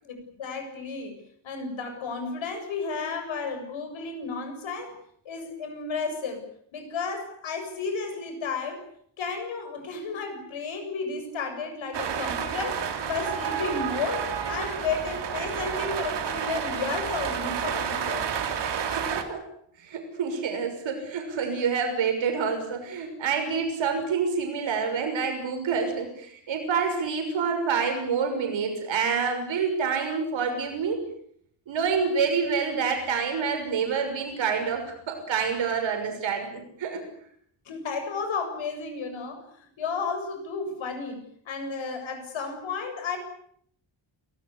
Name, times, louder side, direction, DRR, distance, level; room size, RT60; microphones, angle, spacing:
voice 1, 0.0-1.2 1.4-4.9 5.2-6.4 6.7-8.8 9.2-18.3 37.7-43.2, left 4 dB, 85° left, 7 dB, 7.7 m, -33 dB
sound 1, 11.9-19.2, right 7 dB, 65° right, 3.5 m, -30 dB
voice 2, 18.9-19.4 19.8-31.0 31.7-37.0, right 5 dB, 80° right, 4 dB, 6.5 m, -27 dB
29.5 x 19.5 x 8.4 m, 0.68 s
wide cardioid pair, 170°, 45 cm